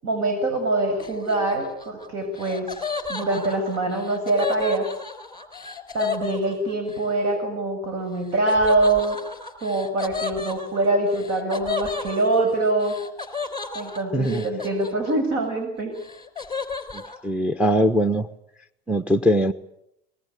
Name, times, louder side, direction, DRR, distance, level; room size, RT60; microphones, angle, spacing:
voice 1, 0.0-2.7 3.1-4.9 5.9-9.2 9.6-13.0 13.7-15.9, right 2 dB, 55° right, 6 dB, 7.3 m, -24 dB
Laughter, 1.0-7.0 8.5-15.4 15.7-17.2, left 5 dB, 15° left, 3.9 m, -33 dB
voice 2, 14.1-14.4 16.9-18.3 18.9-19.5, equal, 5° right, 7 dB, 1.1 m, -21 dB
24.5 x 20.5 x 8.4 m, 0.76 s
hypercardioid pair, 95°, 32 cm